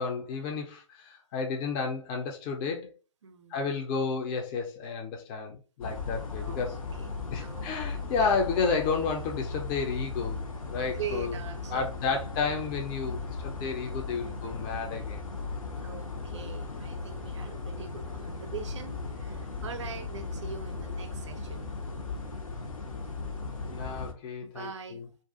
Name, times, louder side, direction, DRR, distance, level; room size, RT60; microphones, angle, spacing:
voice 1, 0.0-2.9 3.5-6.8 7.3-10.4 10.6-11.3 11.7-15.2 23.6-25.0, left 5 dB, 20° left, 0.3 m, -31 dB
voice 2, 3.2-3.6 6.3-6.6 7.0-7.1 7.4-7.8 8.2-8.3 10.9-11.9 14.2-14.6 15.8-21.7 24.4-25.0, right 6 dB, 60° right, 0.5 m, -42 dB
sound 1, 5.8-24.1, left 4 dB, 75° left, 0.7 m, -37 dB
2.4 x 2.2 x 2.6 m
figure-of-eight pair, 125°, 17 cm